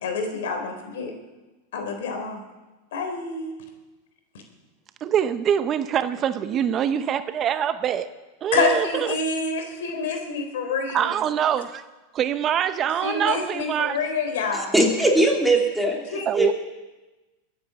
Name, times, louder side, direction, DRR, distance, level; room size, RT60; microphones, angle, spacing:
voice 1, 0.0-1.1 1.7-2.4 2.9-3.5 8.5-11.1 13.0-14.7 16.1-16.2, left 4 dB, 75° left, 3.8 m, -27 dB
voice 2, 5.0-8.1 8.4-9.2 10.9-11.8 12.1-14.0 16.3-16.5, right 9 dB, 35° right, 0.7 m, -24 dB
voice 3, 14.5-16.5, right 1 dB, 5° right, 3.2 m, -21 dB
21.5 x 8.7 x 7.0 m
hypercardioid pair, 110°, 0 cm